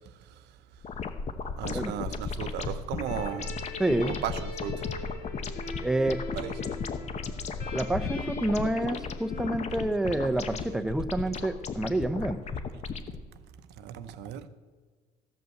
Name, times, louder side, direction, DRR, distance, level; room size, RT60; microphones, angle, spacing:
sound 1, 0.8-13.2, left 4 dB, 40° left, 0.9 m, -35 dB
voice 1, 1.6-3.6 4.0-4.9 6.3-6.8 13.8-14.5, right 9 dB, 80° right, 0.8 m, -36 dB
sound 2, 3.0-11.5, left 4 dB, 60° left, 2.8 m, -43 dB
voice 2, 3.8-4.2 5.8-6.2 7.7-12.4, right 1 dB, 5° right, 0.7 m, -28 dB
14.0 x 5.5 x 7.7 m
cardioid pair, 110°, 17 cm